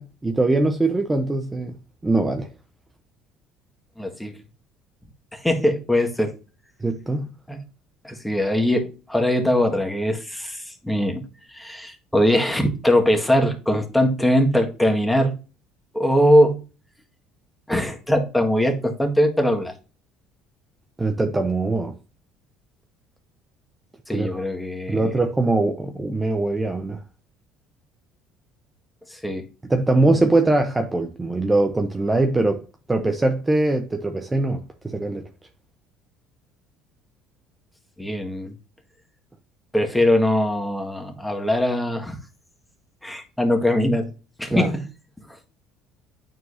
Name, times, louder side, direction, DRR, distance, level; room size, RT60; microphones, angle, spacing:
voice 1, 0.0-1.7 2.0-2.5 6.8-7.3 21.0-22.0 24.1-24.4 24.9-27.0 29.6-32.6 32.9-35.2 44.5-44.7, right 2 dB, 15° right, 0.9 m, -22 dB
voice 2, 4.0-4.3 5.3-6.3 7.5-7.6 8.0-11.2 11.5-15.3 15.9-16.6 17.7-19.7 24.1-25.1 29.1-29.4 38.0-38.5 39.7-42.2 43.0-44.1 44.4-44.8, equal, 5° left, 1.8 m, -21 dB
9.3 x 4.5 x 2.7 m
supercardioid pair, 80°, 0 cm